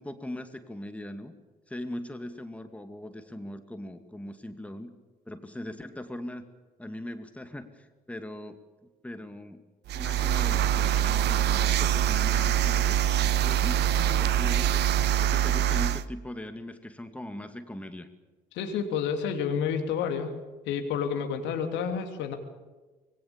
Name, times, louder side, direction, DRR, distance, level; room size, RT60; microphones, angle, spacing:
voice 1, 0.0-1.3 1.7-4.9 5.3-6.4 6.8-8.6 9.0-9.6 9.9-13.0 13.4-14.9 15.2-18.1, left 1 dB, 5° left, 8 dB, 2.3 m, -40 dB
sound 1, 9.9-16.0, right 11 dB, 55° right, 0.9 m, -24 dB
voice 2, 18.5-20.3 20.7-22.3, left 7 dB, 60° left, 5 dB, 2.9 m, -29 dB
25.0 x 22.0 x 7.2 m, 1.2 s
figure-of-eight pair, 50°, 21 cm